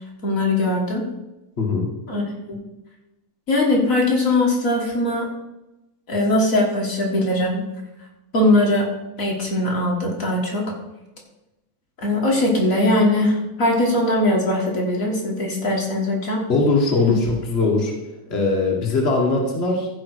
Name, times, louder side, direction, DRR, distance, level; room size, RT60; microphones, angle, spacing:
voice 1, 0.2-1.0 2.1-2.2 2.5-2.6 3.5-5.3 6.1-7.6 8.3-8.9 9.2-10.6 12.0-16.4, left 1 dB, 45° left, -1 dB, 1.0 m, -20 dB
voice 2, 1.6-1.9 16.5-17.9 18.3-19.9, left 3 dB, 70° left, -1 dB, 0.6 m, -20 dB
15.0 x 5.4 x 4.9 m, 0.98 s
omnidirectional pair, 4.1 m